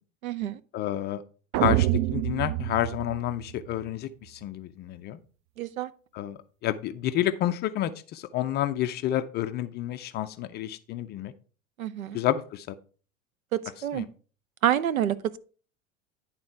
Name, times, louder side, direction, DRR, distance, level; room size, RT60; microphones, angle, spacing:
voice 1, 0.2-0.6 5.6-5.9 11.8-12.2 13.5-14.1 14.6-15.4, right 11 dB, 80° right, 0.6 m, -28 dB
voice 2, 0.7-1.2 1.5-5.2 6.1-11.3 12.1-12.7 13.9-14.0, left 12 dB, 25° left, 0.4 m, -29 dB
sound 1, 1.5-3.8, right 15 dB, 40° right, 0.4 m, -27 dB
10.5 x 3.7 x 4.5 m
figure-of-eight pair, 85°, 41 cm